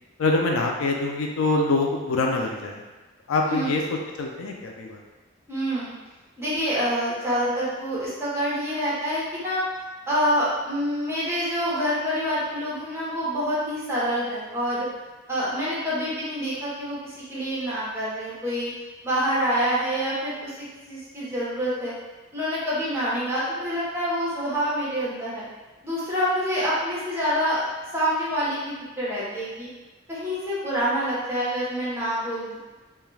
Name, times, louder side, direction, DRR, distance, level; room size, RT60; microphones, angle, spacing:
voice 1, 0.2-2.8 3.3-5.0, left 2 dB, 85° left, 1 dB, 0.4 m, -25 dB
voice 2, 5.5-5.9 6.4-9.6 10.1-14.9 15.3-18.7 19.0-21.9 22.3-25.5 25.8-27.6 27.9-29.7 30.1-32.6, equal, 10° right, -8 dB, 0.8 m, -27 dB
2.3 x 2.2 x 3.1 m, 1.2 s
head